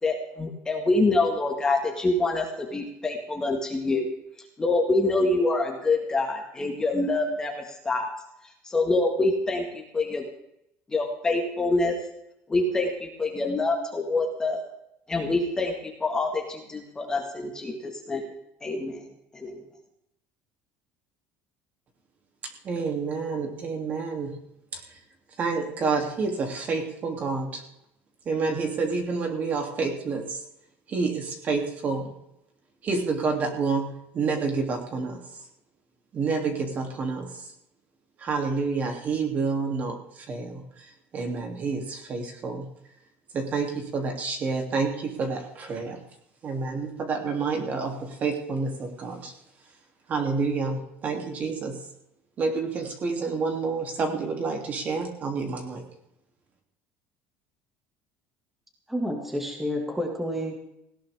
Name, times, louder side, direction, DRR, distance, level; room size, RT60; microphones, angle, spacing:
voice 1, 0.0-4.1 4.6-8.1 8.6-10.3 10.9-11.9 12.5-14.6 15.1-18.3 18.6-19.0 19.3-19.6, left 2 dB, 15° left, 2 dB, 1.9 m, -26 dB
voice 2, 22.4-24.4 24.7-24.8 25.4-27.6 28.2-30.4 30.9-32.1 32.8-35.2 36.1-37.5 38.2-42.7 43.3-46.0 46.4-49.3 50.1-51.8 52.4-55.8, right 4 dB, 30° right, 3 dB, 2.9 m, -29 dB
voice 3, 58.9-60.5, equal, 5° right, 1 dB, 2.2 m, -29 dB
19.0 x 17.0 x 3.6 m, 0.81 s
cardioid pair, 170°, 5 cm